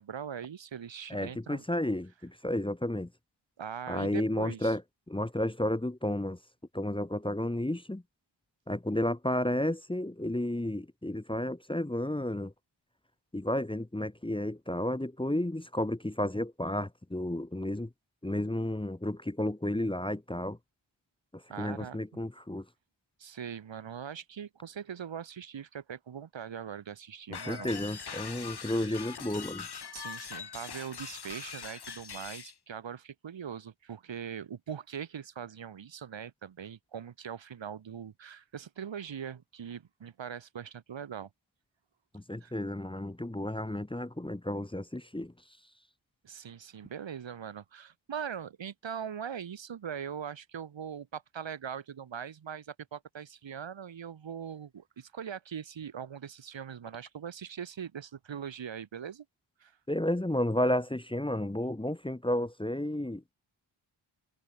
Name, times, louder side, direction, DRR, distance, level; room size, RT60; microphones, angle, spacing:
voice 1, 0.0-1.6 3.6-4.8 21.5-22.2 23.2-28.1 29.9-41.3 42.4-42.5 46.2-59.2 59.6-59.8, right 8 dB, 65° right, 0.9 m, -41 dB
voice 2, 1.1-3.1 3.9-4.8 5.1-6.4 6.7-8.0 8.7-12.5 13.3-17.9 18.2-20.6 21.3-22.7 27.3-29.7 42.1-45.3 59.9-63.2, left 1 dB, 10° left, 0.8 m, -32 dB
sound 1, 27.3-32.5, left 6 dB, 55° left, 1.1 m, -42 dB
wide cardioid pair, 50°, 48 cm